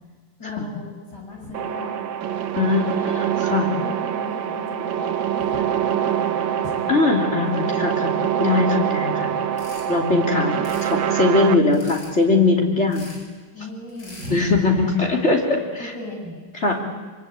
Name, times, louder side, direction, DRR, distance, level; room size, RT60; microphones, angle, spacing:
voice 1, 0.4-2.1 3.8-7.1 7.5-8.0 11.2-11.7 13.5-16.7, left 1 dB, 50° left, -1 dB, 8.1 m, -37 dB
sound 1, 1.5-11.6, right 9 dB, 65° right, 1.7 m, -24 dB
voice 2, 2.5-3.7 6.9-8.1 8.4-9.3 9.9-10.6 10.8-13.0 14.3-15.9 16.6-16.7, left 3 dB, 30° left, 1 dB, 3.3 m, -20 dB
sound 2, 9.6-9.9 10.5-10.9 11.7-12.1 12.9-13.2 13.9-14.3, left 1 dB, 85° left, 7.0 m, -42 dB
25.0 x 25.0 x 8.8 m, 1.5 s
omnidirectional pair, 2.4 m